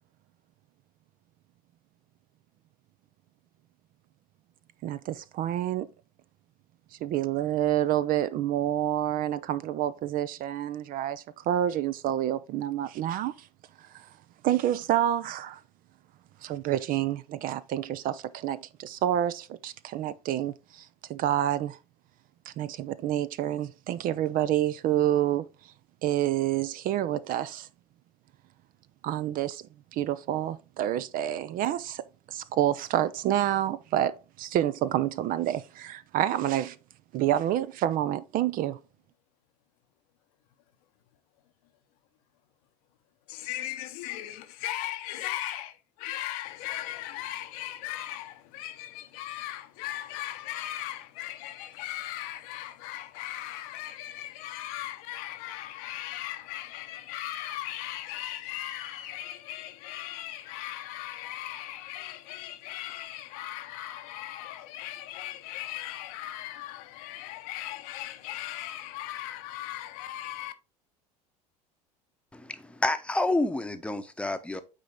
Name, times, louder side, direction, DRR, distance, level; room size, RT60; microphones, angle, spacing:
voice 1, 4.8-5.9 7.0-13.5 13.8-14.1 14.4-15.6 16.4-21.8 22.5-25.5 26.0-27.7 29.0-29.6 29.9-36.8 37.1-38.8, right 12 dB, 45° right, 0.5 m, -28 dB
voice 2, 43.3-70.5, left 14 dB, 60° left, 0.9 m, -38 dB
voice 3, 72.3-74.6, left 2 dB, 5° left, 0.9 m, -29 dB
8.9 x 4.1 x 3.7 m
figure-of-eight pair, 70°, 21 cm